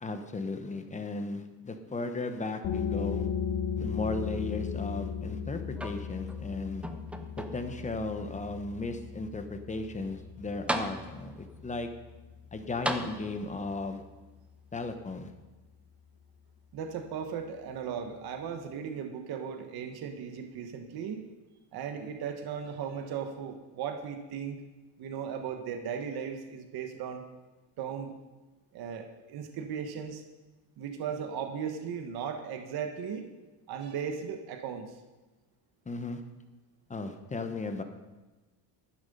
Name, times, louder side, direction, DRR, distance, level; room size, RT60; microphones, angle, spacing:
voice 1, 0.0-3.3 3.8-6.8 7.4-11.9 12.5-14.0 14.7-15.3 35.9-36.2 36.9-37.8, left 3 dB, 15° left, 7 dB, 0.9 m, -36 dB
sound 1, 2.6-14.0, left 7 dB, 50° left, 1.6 m, -37 dB
sound 2, 5.8-6.4 6.8-7.8 8.5-8.6 10.2-10.3 10.7-11.5 12.8-13.7 14.8-14.9, right 1 dB, 5° right, 0.6 m, -36 dB
voice 2, 16.7-21.2 21.7-24.6 25.0-27.2 27.8-28.1 28.7-30.2 30.8-33.3 33.7-35.0, right 7 dB, 50° right, 6 dB, 1.3 m, -37 dB
11.5 x 9.8 x 5.4 m, 1.2 s
cardioid pair, 135°, 47 cm